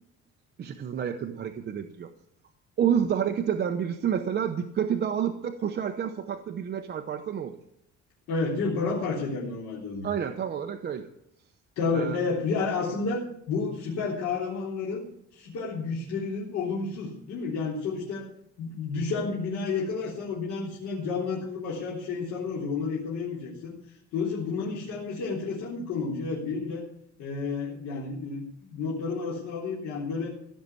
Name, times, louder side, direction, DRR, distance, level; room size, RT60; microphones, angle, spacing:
voice 1, 0.6-2.1 2.8-7.5 10.0-11.1 11.9-12.2, right 8 dB, 35° right, 5 dB, 0.9 m, -29 dB
voice 2, 8.3-10.1 11.8-13.2 13.5-15.0 15.3-18.3 18.6-26.8 27.2-30.3, left 4 dB, 65° left, -5 dB, 3.7 m, -31 dB
16.0 x 7.4 x 8.3 m, 0.75 s
cardioid pair, 180°, 30 cm